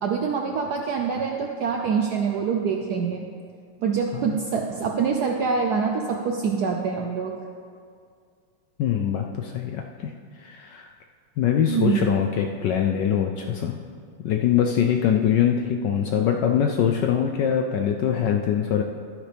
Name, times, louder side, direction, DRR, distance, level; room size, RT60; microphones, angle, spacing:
voice 1, 0.0-3.2 3.8-7.3 11.7-12.1, right 6 dB, 70° right, 2 dB, 0.9 m, -25 dB
voice 2, 8.8-10.1 10.4-10.9 11.4-13.8 14.2-18.8, left 9 dB, 75° left, 3 dB, 1.0 m, -23 dB
12.0 x 9.8 x 3.4 m, 2.2 s
omnidirectional pair, 2.3 m